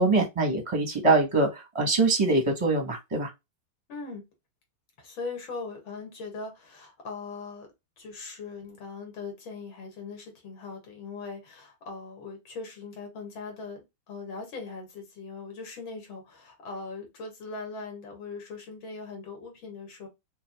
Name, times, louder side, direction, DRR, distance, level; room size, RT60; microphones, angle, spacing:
voice 1, 0.0-3.3, right 3 dB, 25° right, 0.7 m, -24 dB
voice 2, 3.9-4.2 5.0-7.7 8.0-20.1, left 4 dB, 85° left, 2.5 m, -40 dB
5.7 x 2.6 x 2.2 m
omnidirectional pair, 2.1 m